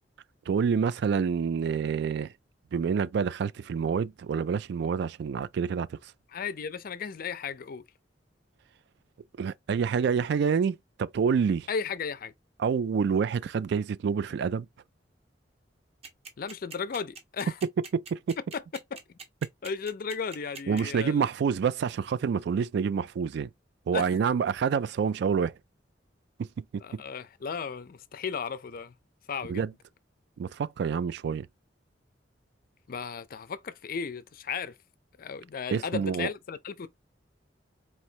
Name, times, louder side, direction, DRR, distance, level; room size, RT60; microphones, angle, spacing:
voice 1, 0.5-2.3 2.7-6.0 9.4-11.7 12.6-14.7 17.6-18.4 20.7-23.5 23.9-25.5 26.4-27.0 29.5-29.7 30.4-31.5 35.7-36.3, right 6 dB, 65° right, 0.3 m, -27 dB
voice 2, 6.3-7.8 11.7-12.3 16.4-17.6 18.5-18.6 18.9-19.0 19.6-21.3 23.9-24.1 26.8-28.9 29.3-29.7 32.9-34.8 35.2-36.9, left 6 dB, 50° left, 0.5 m, -35 dB
sound 1, 16.0-21.0, right 4 dB, 35° right, 1.0 m, -43 dB
4.3 x 3.0 x 2.8 m
head